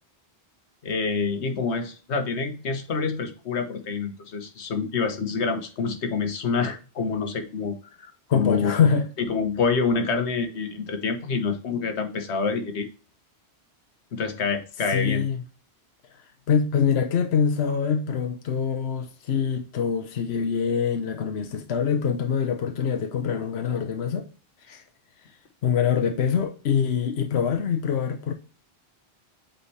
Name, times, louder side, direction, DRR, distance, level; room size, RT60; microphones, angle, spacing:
voice 1, 0.8-8.9 9.2-12.9 14.1-15.2, left 5 dB, 90° left, 1.3 m, -27 dB
voice 2, 8.3-9.1 14.9-15.4 16.5-24.2 24.7-24.8 25.6-28.3, left 7 dB, 75° left, 1.0 m, -24 dB
8.2 x 4.4 x 3.2 m
omnidirectional pair, 1.1 m